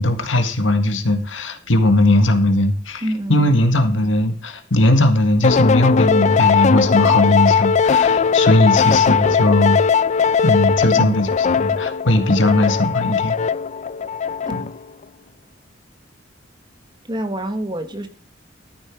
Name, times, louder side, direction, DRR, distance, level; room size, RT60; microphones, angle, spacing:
voice 1, 0.0-3.0 3.3-9.8 10.4-11.3 11.6-13.3, left 1 dB, 75° left, 8 dB, 1.8 m, -18 dB
voice 2, 3.0-3.6 8.8-9.2 10.9-11.2 17.0-18.1, right 1 dB, 25° right, 8 dB, 1.5 m, -27 dB
sound 1, 5.4-14.8, left 6 dB, 40° left, 0.4 m, -18 dB
13.5 x 7.8 x 4.6 m, 0.38 s
head